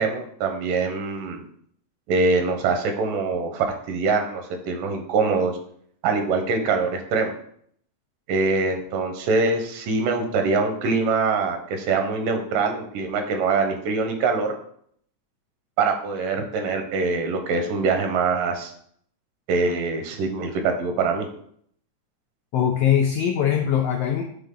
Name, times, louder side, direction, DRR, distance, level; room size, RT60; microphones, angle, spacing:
voice 1, 0.0-1.5 2.1-5.5 6.0-7.3 8.3-14.6 15.8-18.7 19.5-21.3, right 4 dB, 85° right, 5 dB, 2.5 m, -24 dB
voice 2, 22.5-24.2, left 9 dB, 85° left, 2 dB, 1.4 m, -21 dB
8.8 x 4.0 x 3.7 m, 0.65 s
omnidirectional pair, 3.7 m